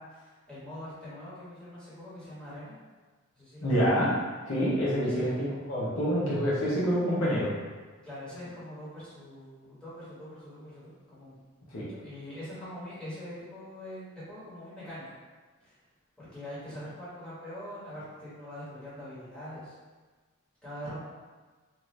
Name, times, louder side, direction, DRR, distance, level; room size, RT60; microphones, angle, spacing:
voice 1, 0.0-2.8 3.3-3.7 5.0-5.3 8.0-11.4 11.9-15.1 15.6-15.7 16.2-19.7 20.6-21.0, equal, 5° left, -13 dB, 1.3 m, -43 dB
voice 2, 3.6-4.1 4.5-7.5 11.7-11.8, equal, 70° left, -7 dB, 0.8 m, -27 dB
2.8 x 2.5 x 3.1 m, 1.4 s
head